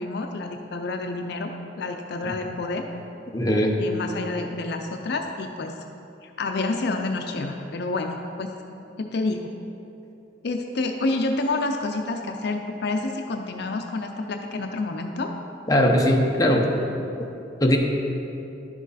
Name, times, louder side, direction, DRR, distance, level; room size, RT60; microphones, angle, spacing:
voice 1, 0.0-1.5 1.8-2.9 3.8-5.7 6.2-8.5 9.0-9.5 10.4-15.3, left 2 dB, 65° left, 4 dB, 0.5 m, -28 dB
voice 2, 3.3-3.7 15.7-16.7 17.2-17.3 17.6-17.8, equal, 20° left, 0 dB, 0.8 m, -20 dB
11.5 x 6.2 x 4.1 m, 2.8 s
head